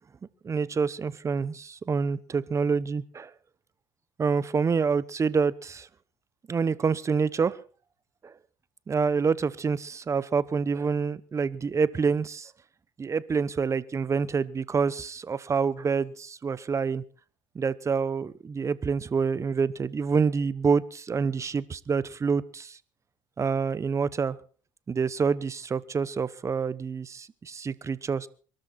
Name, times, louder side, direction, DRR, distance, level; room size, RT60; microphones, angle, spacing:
voice 1, 0.4-3.3 4.2-5.9 6.5-7.6 8.2-8.3 8.9-12.5 13.0-17.0 17.5-22.8 23.4-24.4 24.9-28.3, right 5 dB, 30° right, 1.0 m, -27 dB
23.0 x 13.0 x 4.4 m
supercardioid pair, 90°, 10 cm